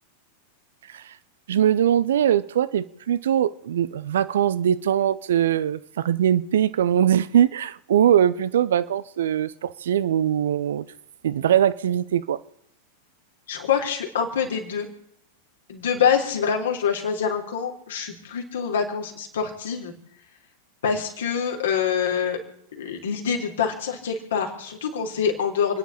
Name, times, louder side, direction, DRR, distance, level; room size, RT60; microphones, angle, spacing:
voice 1, 1.5-10.8 11.2-12.4, right 10 dB, 60° right, 0.7 m, -21 dB
voice 2, 13.5-14.9 15.7-19.9 20.8-22.4 22.7-25.8, left 7 dB, 60° left, 3.6 m, -25 dB
30.0 x 10.5 x 4.3 m
figure-of-eight pair, 90°, 0 cm